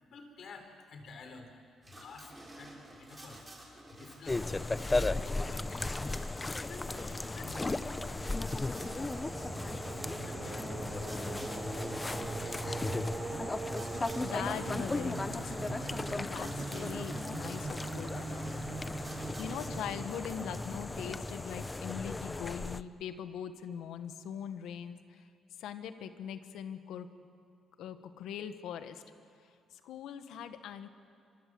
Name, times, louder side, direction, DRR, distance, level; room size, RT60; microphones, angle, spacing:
voice 1, 0.0-1.5 1.9-3.4 3.9-4.9 5.2-6.1 6.6-8.1 8.6-9.6 9.9-11.5 11.9-13.2, left 3 dB, 60° left, 5 dB, 4.2 m, -51 dB
sound 1, 1.8-20.2, right 1 dB, 20° right, 6.8 m, -51 dB
sound 2, 4.3-22.8, left 2 dB, 20° left, 0.7 m, -36 dB
Singing, 7.5-22.3, right 4 dB, 40° right, 1.0 m, -43 dB
voice 2, 14.2-18.5 19.4-25.3 25.6-27.1 27.8-29.0 29.4-30.9, left 8 dB, 85° left, 10 dB, 1.4 m, -41 dB
26.0 x 24.0 x 7.8 m, 2.3 s
cardioid pair, 90°, 0 cm